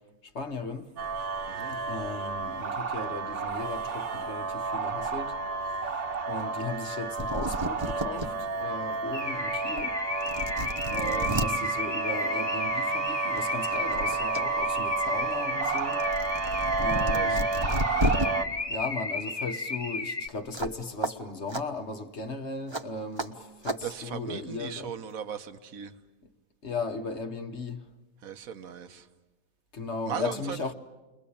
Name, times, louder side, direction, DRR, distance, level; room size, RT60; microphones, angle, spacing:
voice 1, 0.3-0.9 1.7-5.3 6.3-8.3 8.6-10.0 10.9-16.0 16.8-17.5 18.7-24.9 26.6-27.8 29.7-30.7, left 3 dB, 55° left, 1.4 m, -36 dB
sound 1, 1.0-18.5, right 4 dB, 55° right, 1.4 m, -31 dB
voice 2, 1.5-1.8 8.1-8.2 10.8-11.4 17.1-17.9 23.8-25.9 28.2-29.1 30.0-30.7, right 8 dB, 75° right, 1.5 m, -38 dB
sound 2, 6.9-7.0 7.2-8.3 8.8-8.9 9.8-9.9 10.2-11.5 12.8-13.0 13.4-14.4 14.8-18.3 20.5-20.7 21.0-21.1 21.5-21.6 22.7-22.8 23.2-23.3 23.6-23.8, equal, 20° right, 1.1 m, -31 dB
Car / Alarm, 9.1-20.3, left 3 dB, 30° left, 0.9 m, -34 dB
30.0 x 22.0 x 8.5 m
omnidirectional pair, 1.5 m